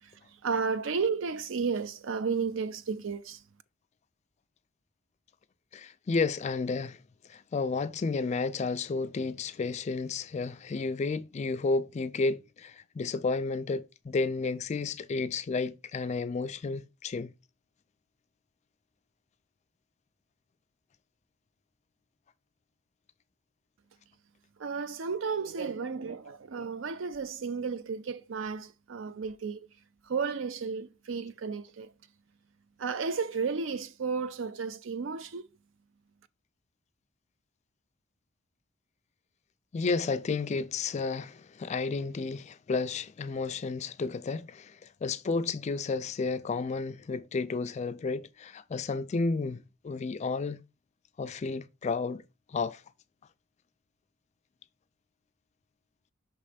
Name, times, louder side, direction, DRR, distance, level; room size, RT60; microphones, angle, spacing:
voice 1, 0.4-3.4 24.6-29.6 30.1-31.9 32.8-35.4, right 5 dB, 65° right, 0.5 m, -33 dB
voice 2, 5.7-7.0 7.3-17.3 39.7-50.6 51.2-52.2 52.5-52.8, left 4 dB, 35° left, 0.3 m, -32 dB
6.0 x 3.2 x 4.9 m
head